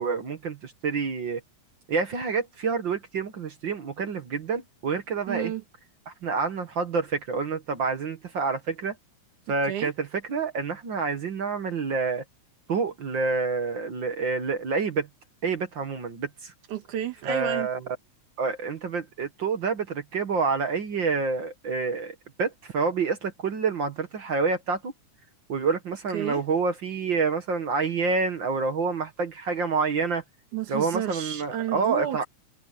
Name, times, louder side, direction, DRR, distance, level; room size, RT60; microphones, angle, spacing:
voice 1, 0.0-1.4 1.9-5.5 6.1-8.9 9.5-12.2 12.7-15.1 15.4-16.5 17.2-18.0 18.4-24.9 25.5-30.2 30.7-32.2, right 4 dB, 50° right, 1.7 m, -28 dB
voice 2, 5.3-5.6 9.6-9.9 16.7-17.7 26.1-26.4 30.5-32.3, right 10 dB, 75° right, 3.0 m, -31 dB
omnidirectional pair, 3.5 m